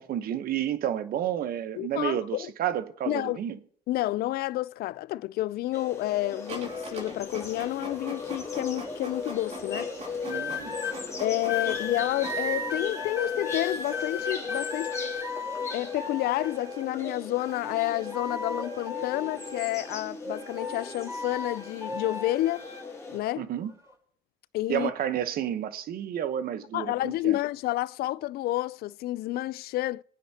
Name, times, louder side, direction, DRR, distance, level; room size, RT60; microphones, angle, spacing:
voice 1, 0.0-3.6 10.3-10.8 23.4-23.7 24.7-27.4, right 10 dB, 60° right, 1.0 m, -31 dB
voice 2, 1.8-2.5 3.1-3.4 3.9-9.9 11.2-14.9 15.7-22.6 23.1-23.4 24.5-24.9 26.7-30.0, left 16 dB, 65° left, 0.4 m, -30 dB
sound 1, 5.7-23.2, left 4 dB, 15° left, 2.8 m, -37 dB
Printer, 6.5-12.7, right 1 dB, 40° right, 2.6 m, -43 dB
sound 2, 10.2-10.9 11.5-17.0 17.4-20.0 20.3-22.8 23.6-23.9, left 4 dB, 20° right, 4.5 m, -36 dB
25.5 x 9.3 x 2.8 m
cardioid pair, 110°, 17 cm